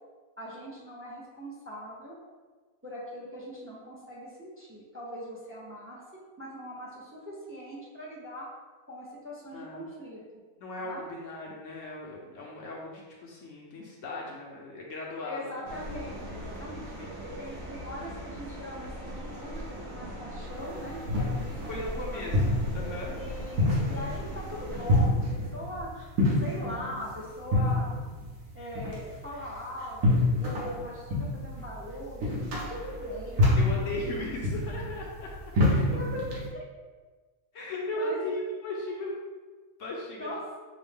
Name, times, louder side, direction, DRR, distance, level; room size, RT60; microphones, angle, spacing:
voice 1, 0.4-2.2 2.8-6.0 6.4-8.5 8.9-10.2 10.8-11.1 15.2-22.4 23.1-26.1 26.4-27.9 28.5-33.5 35.6-36.6 37.9-38.2 40.2-40.4, equal, 15° right, -5 dB, 0.4 m, -41 dB
voice 2, 9.5-9.9 10.6-15.7 17.0-17.3 21.7-23.2 33.6-35.5 37.5-39.2 39.8-40.3, left 1 dB, 65° left, -3 dB, 0.9 m, -37 dB
sound 1, 15.6-25.0, equal, 65° right, 1.2 m, -40 dB
sound 2, 20.6-36.5, left 2 dB, 85° right, 1.5 m, -28 dB
5.9 x 2.0 x 3.5 m, 1.4 s
omnidirectional pair, 1.6 m